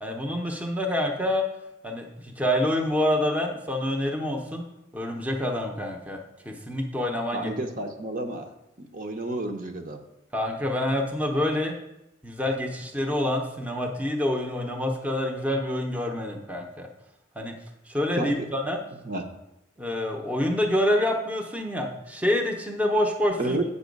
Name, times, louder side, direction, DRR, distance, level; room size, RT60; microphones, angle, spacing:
voice 1, 0.0-1.4 1.8-4.6 4.9-6.2 6.4-7.5 10.3-11.7 12.2-16.9 17.4-17.5 17.9-18.8 19.8-23.6, left 1 dB, 5° right, 2 dB, 0.8 m, -27 dB
voice 2, 7.3-8.5 8.8-10.0 18.2-18.5 19.0-19.2 23.4-23.6, right 2 dB, 45° right, 4 dB, 0.8 m, -30 dB
8.4 x 5.4 x 5.3 m, 0.89 s
head